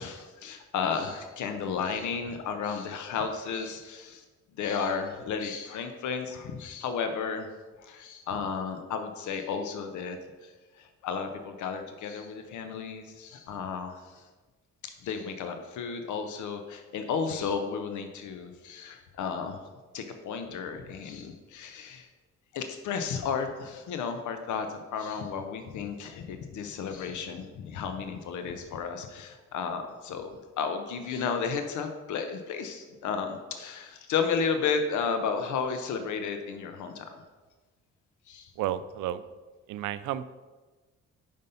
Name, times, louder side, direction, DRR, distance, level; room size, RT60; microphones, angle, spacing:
voice 1, 0.0-4.2 4.6-7.5 7.8-14.2 14.8-19.6 19.9-22.1 22.5-37.2 38.3-38.5, left 6 dB, 75° left, 7 dB, 0.7 m, -33 dB
voice 2, 38.6-39.2 39.7-40.2, right 12 dB, 85° right, 14 dB, 0.4 m, -32 dB
5.5 x 5.2 x 5.4 m, 1.3 s
cardioid pair, 90°, 30 cm